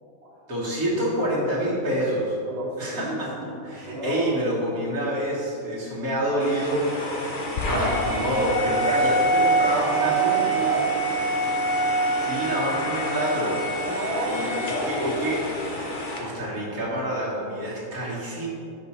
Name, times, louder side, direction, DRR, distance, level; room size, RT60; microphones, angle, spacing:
voice 1, 0.5-2.4 2.8-3.3 3.6-6.9 7.1-7.4 7.7-10.4 12.2-13.6 14.3-14.5 14.8-15.4 16.2-18.5, right 1 dB, 90° right, -7 dB, 2.1 m, -27 dB
voice 2, 2.5-4.3 9.7-11.0 13.8-15.3, right 1 dB, 45° right, -5 dB, 1.5 m, -32 dB
sound 1, 6.4-16.2, right 1 dB, 40° left, 0.9 m, -25 dB
sound 2, 7.5-9.2, left 3 dB, 75° left, 1.2 m, -34 dB
6.0 x 5.7 x 4.3 m, 2.7 s
omnidirectional pair, 1.5 m